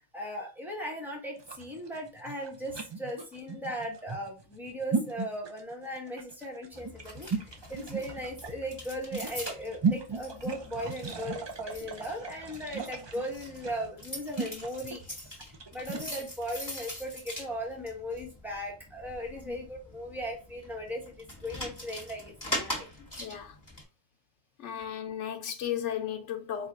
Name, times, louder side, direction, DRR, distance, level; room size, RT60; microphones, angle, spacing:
voice 1, 0.1-22.9, equal, ahead, 1.0 m, -38 dB
sound 1, 1.4-16.1, right 5 dB, 40° right, 0.4 m, -36 dB
sound 2, 6.7-23.8, left 1 dB, 15° left, 1.5 m, -43 dB
voice 2, 23.2-23.6 24.6-26.7, left 9 dB, 85° left, 1.0 m, -35 dB
4.4 x 2.4 x 3.8 m
omnidirectional pair, 1.2 m